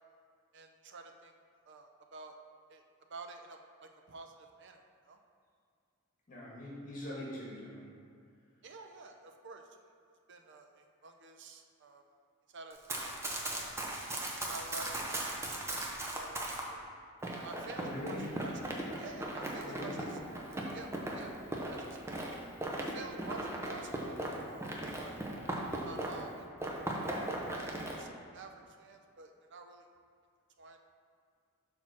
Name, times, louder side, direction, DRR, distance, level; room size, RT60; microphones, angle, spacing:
voice 1, 0.5-1.3 1.7-2.4 2.7-2.8 3.1-5.2 8.6-9.7 10.3-12.0 12.5-13.1 13.5-13.6 14.4-15.0 15.7-16.4 16.7-16.9 17.4-18.5 19.0-20.2 20.7-21.4 21.7-22.4 22.8-25.2 25.8-27.1 27.5-29.9 30.6-30.8, right 3 dB, 55° right, 5 dB, 0.6 m, -50 dB
voice 2, 6.3-7.8 17.8-18.3 19.6-19.9, left 1 dB, 35° left, -6 dB, 1.9 m, -42 dB
Run, 12.7-16.7 17.2-26.3 26.6-28.0, right 1 dB, 10° right, 0.7 m, -38 dB
6.5 x 4.4 x 6.0 m, 2.2 s
head